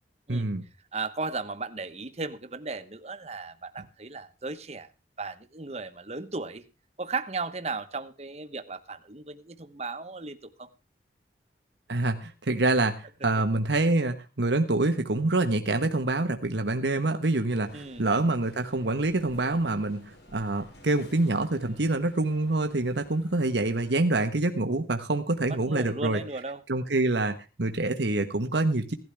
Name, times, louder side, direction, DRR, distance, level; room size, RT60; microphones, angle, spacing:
voice 1, 0.3-0.6 11.9-26.2 26.7-29.0, right 2 dB, 80° right, 7 dB, 1.3 m, -26 dB
voice 2, 0.9-4.9 5.2-6.6 7.0-10.7 17.7-18.1 25.5-26.6, right 3 dB, 35° right, 10 dB, 1.2 m, -36 dB
sound 1, 17.5-23.9, left 1 dB, 90° left, 7.2 m, -53 dB
17.0 x 12.0 x 3.4 m, 0.30 s
head